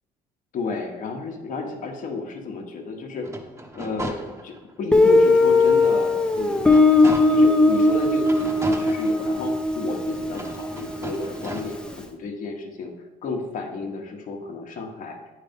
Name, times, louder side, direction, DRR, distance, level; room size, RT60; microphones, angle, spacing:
voice 1, 0.5-3.3 3.7-6.7 7.0-12.9 13.2-15.2, left 3 dB, 50° left, 2 dB, 1.2 m, -32 dB
sound 1, 3.1-4.8 5.3-5.4 5.9-7.6 8.2-9.7 10.3-11.6, right 1 dB, 15° right, 1.1 m, -36 dB
Guitar, 4.9-11.6, left 2 dB, 5° left, 0.7 m, -19 dB
8.9 x 3.3 x 5.2 m, 1.1 s
cardioid pair, 110°, 17 cm